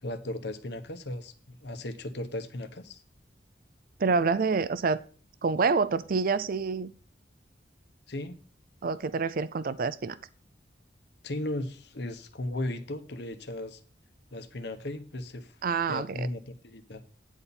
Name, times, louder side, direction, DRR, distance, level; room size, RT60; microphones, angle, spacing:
voice 1, 0.0-3.0 8.1-8.4 11.2-13.8 14.3-15.5 15.9-17.0, left 1 dB, 65° left, 9 dB, 1.0 m, -36 dB
voice 2, 4.0-5.0 5.4-6.9 8.8-10.2 15.6-16.3, right 4 dB, 50° right, 15 dB, 0.5 m, -27 dB
9.7 x 4.2 x 7.1 m, 0.40 s
head